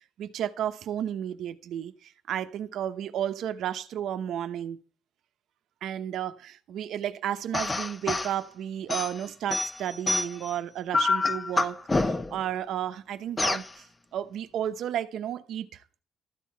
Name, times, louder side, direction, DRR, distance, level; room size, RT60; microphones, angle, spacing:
voice 1, 0.0-4.8 5.8-13.8 14.1-16.0, right 10 dB, 80° right, 0.9 m, -33 dB
sound 1, 7.5-8.3 8.9-10.5 10.9-12.4 13.4-13.7, left 3 dB, 20° left, 0.9 m, -27 dB
13.0 x 7.4 x 4.5 m
cardioid pair, 90°, 0 cm